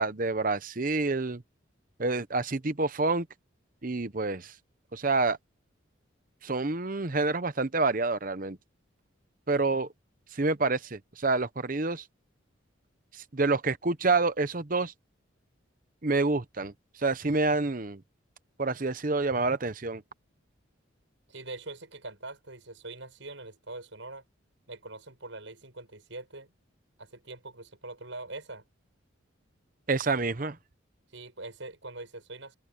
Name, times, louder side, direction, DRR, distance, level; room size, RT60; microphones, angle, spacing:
voice 1, 0.0-1.4 2.0-3.3 3.8-4.5 4.9-5.4 6.4-8.6 9.5-9.9 10.3-12.0 13.1-14.9 16.0-16.7 17.0-18.0 18.6-20.0 29.9-30.6, right 3 dB, 40° right, 0.9 m, -28 dB
voice 2, 9.5-9.9 21.3-24.2 24.7-26.5 27.0-28.6 31.1-32.6, right 2 dB, 70° right, 6.6 m, -43 dB
open air
head